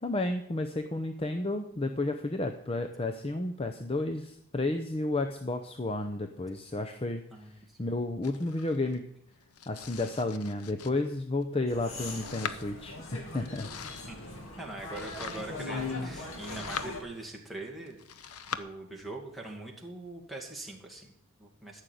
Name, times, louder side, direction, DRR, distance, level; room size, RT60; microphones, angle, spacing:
voice 1, 0.0-9.0 9.7-13.7, left 2 dB, 25° left, 6 dB, 0.7 m, -32 dB
voice 2, 7.3-7.8 13.9-14.2 14.6-18.0 18.5-21.8, right 2 dB, ahead, -2 dB, 2.3 m, -42 dB
Domestic sounds home sounds, 8.2-18.6, left 7 dB, 90° left, 0.9 m, -44 dB
sound 1, 11.7-17.0, left 3 dB, 70° left, 2.4 m, -40 dB
14.0 x 6.5 x 9.3 m, 0.72 s
head